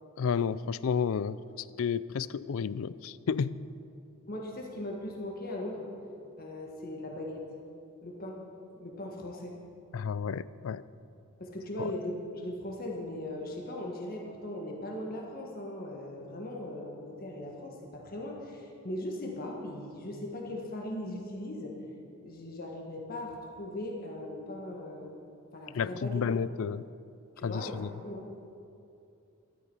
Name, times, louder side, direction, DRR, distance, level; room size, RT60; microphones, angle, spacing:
voice 1, 0.2-1.4 1.8-3.7 9.9-10.8 11.8-11.9 25.7-26.9 27.4-27.9, left 6 dB, 65° left, 18 dB, 0.4 m, -31 dB
voice 2, 4.3-5.9 6.4-7.4 8.0-8.4 8.8-9.5 11.4-21.9 22.2-25.1 25.5-26.2 27.4-28.3, left 1 dB, 45° left, 0 dB, 1.5 m, -39 dB
13.0 x 12.5 x 5.4 m, 2.6 s
head